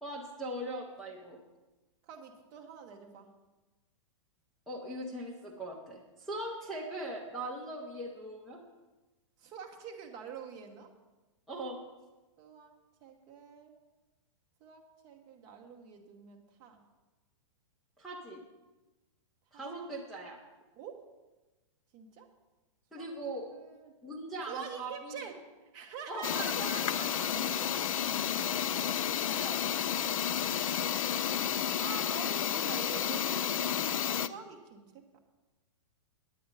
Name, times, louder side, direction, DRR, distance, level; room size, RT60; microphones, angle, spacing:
voice 1, 0.0-1.4 4.7-8.6 11.5-11.8 18.0-18.4 19.5-20.4 22.9-23.5 24.0-25.2 26.1-26.7 28.0-28.4 29.3-29.6, right 1 dB, ahead, -6 dB, 0.6 m, -40 dB
voice 2, 2.0-3.3 9.4-10.9 12.4-12.7 13.0-13.7 14.6-16.8 19.5-19.9 20.8-21.1 21.9-22.3 23.0-23.1 23.5-23.9 24.5-27.7 28.1-28.3 29.2-29.4 29.8-33.7 34.2-35.2, right 7 dB, 25° right, 3 dB, 0.9 m, -47 dB
sound 1, 26.2-34.3, left 9 dB, 85° left, 0.5 m, -31 dB
9.9 x 8.5 x 5.3 m, 1.1 s
supercardioid pair, 175°, 17 cm